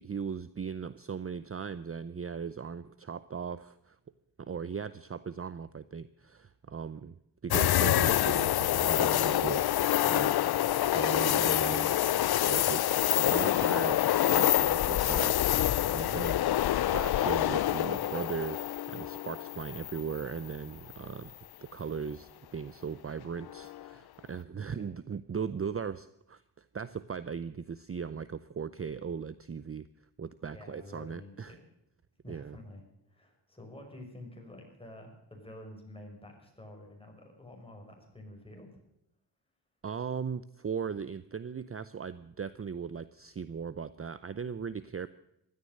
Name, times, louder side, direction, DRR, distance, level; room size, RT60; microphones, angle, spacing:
voice 1, 0.0-4.0 4.4-7.2 7.4-9.6 9.9-11.9 12.4-14.1 14.3-16.4 16.8-21.3 21.6-29.9 30.2-31.6 32.3-32.6 39.8-45.1, right 6 dB, 30° right, 15 dB, 0.6 m, -38 dB
sound 1, 7.5-20.5 20.9-21.0 23.5-23.9, left 13 dB, 60° left, 0.5 m, -27 dB
voice 2, 30.5-31.7 32.2-32.8 33.1-38.8, left 1 dB, 15° left, 1 dB, 6.1 m, -49 dB
16.0 x 13.0 x 6.6 m, 0.80 s
wide cardioid pair, 100°, 43 cm